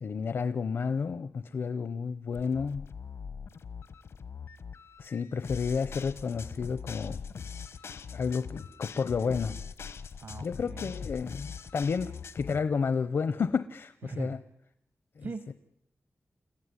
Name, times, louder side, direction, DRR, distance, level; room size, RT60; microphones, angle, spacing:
voice 1, 0.0-2.9 5.0-7.2 8.1-9.5 10.4-14.4 15.2-15.5, left 5 dB, 65° left, 13 dB, 0.8 m, -31 dB
sound 1, 2.3-12.6, left 6 dB, 85° left, 1.4 m, -42 dB
voice 2, 10.2-10.9 14.0-14.3 15.2-15.5, right 4 dB, 55° right, 13 dB, 1.2 m, -40 dB
29.0 x 15.0 x 9.8 m, 0.80 s
wide cardioid pair, 140°, 4 cm